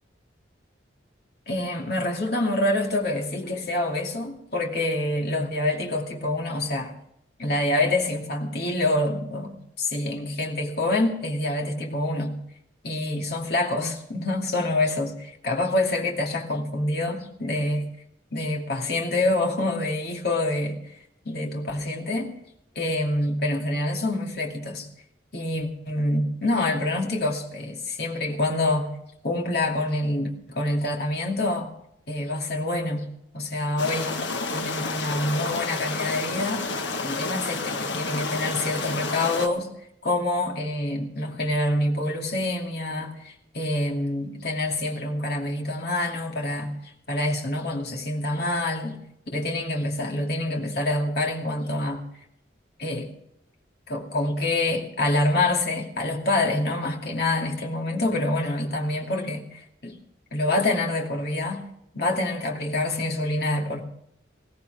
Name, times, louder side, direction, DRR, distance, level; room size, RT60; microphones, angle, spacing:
voice 1, 1.5-6.9 7.4-12.4 12.8-17.9 18.3-20.8 21.3-22.3 22.8-24.9 25.3-28.9 29.2-31.7 32.1-33.1 33.3-34.2 34.5-36.7 37.0-39.7 40.0-46.7 47.1-49.0 49.3-52.0 52.8-53.1 53.9-60.0 60.3-61.6 61.9-63.8, left 2 dB, 55° left, 0 dB, 2.5 m, -26 dB
sound 1, 33.8-39.5, left 3 dB, 70° left, 1.4 m, -30 dB
20.5 x 16.5 x 3.5 m, 0.75 s
head